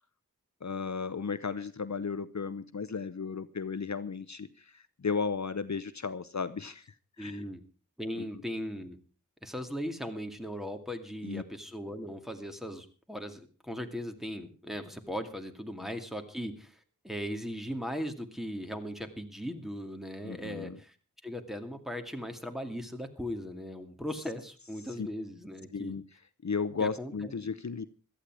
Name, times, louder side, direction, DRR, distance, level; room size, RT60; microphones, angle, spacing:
voice 1, 0.6-6.9 7.2-7.4 8.2-8.3 11.2-11.4 20.2-20.8 24.9-25.1 25.7-26.0 26.4-27.8, left 5 dB, 55° left, 14 dB, 0.7 m, -34 dB
voice 2, 7.2-7.6 8.0-9.0 9.4-16.8 17.0-21.0 21.2-25.9 26.8-27.3, equal, ahead, 5 dB, 2.4 m, -38 dB
17.0 x 13.0 x 4.8 m, 0.37 s
wide cardioid pair, 45°, 33 cm